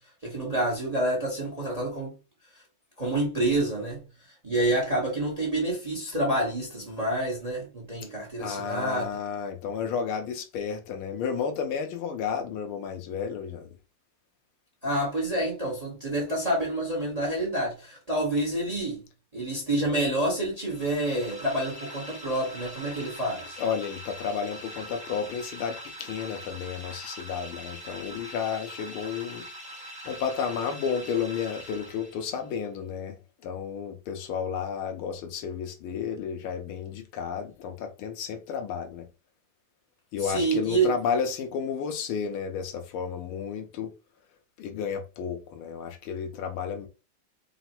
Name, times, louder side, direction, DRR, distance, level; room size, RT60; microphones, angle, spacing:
voice 1, 0.2-2.1 3.0-4.0 4.4-9.1 14.8-19.0 19.3-23.6 40.2-40.9, right 1 dB, 25° right, 1.0 m, -28 dB
voice 2, 8.4-13.7 23.6-29.5 30.0-39.1 40.1-43.9 44.6-46.9, left 7 dB, 75° left, 1.5 m, -32 dB
sound 1, 20.6-32.5, equal, 5° right, 0.9 m, -43 dB
4.1 x 2.1 x 4.2 m
omnidirectional pair, 2.4 m